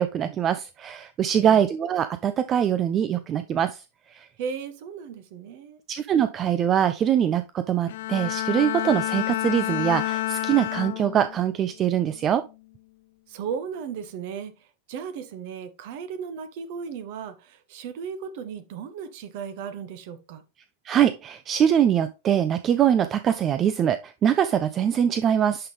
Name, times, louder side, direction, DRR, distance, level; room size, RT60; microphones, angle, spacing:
voice 1, 0.0-3.8 4.1-4.3 5.9-12.5 20.9-25.7, right 9 dB, 30° right, 0.4 m, -23 dB
voice 2, 4.4-5.8 13.3-20.4, right 6 dB, 50° right, 1.0 m, -36 dB
Bowed string instrument, 7.9-11.4 11.9-12.3, left 15 dB, 55° left, 0.4 m, -29 dB
11.0 x 3.8 x 3.3 m
figure-of-eight pair, 90°, 0 cm